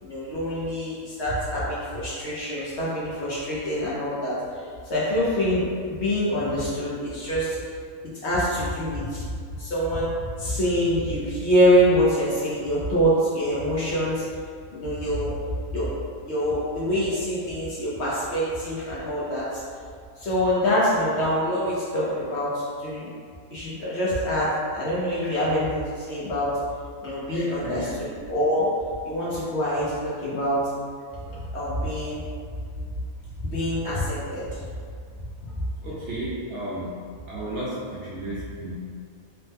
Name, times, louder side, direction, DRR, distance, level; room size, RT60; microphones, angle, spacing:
voice 1, 0.0-4.6 4.9-5.6 5.9-7.6 8.2-9.3 9.6-14.2 14.7-15.3 15.7-15.9 16.3-19.6 20.2-23.1 23.5-26.5 27.0-28.7 29.0-30.6 31.3-32.2 33.4-34.6 35.8-35.9, equal, 60° left, -7 dB, 0.8 m, -25 dB
voice 2, 27.3-27.9 35.8-36.9 37.3-38.7, right 1 dB, 65° right, -7 dB, 0.8 m, -33 dB
3.1 x 2.1 x 3.2 m, 2.1 s
omnidirectional pair, 1.5 m